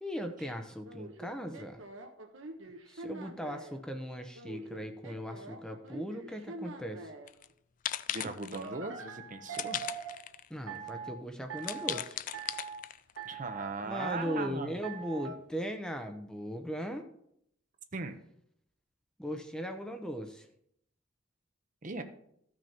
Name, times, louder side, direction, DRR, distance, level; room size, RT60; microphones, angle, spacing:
voice 1, 0.0-1.8 2.9-7.1 10.5-12.2 13.8-17.1 19.2-20.5, equal, 5° left, 5 dB, 0.7 m, -38 dB
sound 1, 0.8-3.8 4.3-7.3 8.5-10.2 10.7-11.1 11.5-12.0 12.3-12.8 13.2-13.7 14.0-14.5 14.8-15.4, right 5 dB, 90° right, 1.3 m, -43 dB
sound 2, 7.3-7.5 7.8-8.7 9.5-10.5 10.9-11.0 11.6-13.2, left 11 dB, 40° left, 0.3 m, -37 dB
voice 2, 8.1-9.8 13.2-14.7 17.9-18.2 21.8-22.0, right 3 dB, 40° right, 8 dB, 0.8 m, -38 dB
14.5 x 6.2 x 4.3 m, 0.72 s
head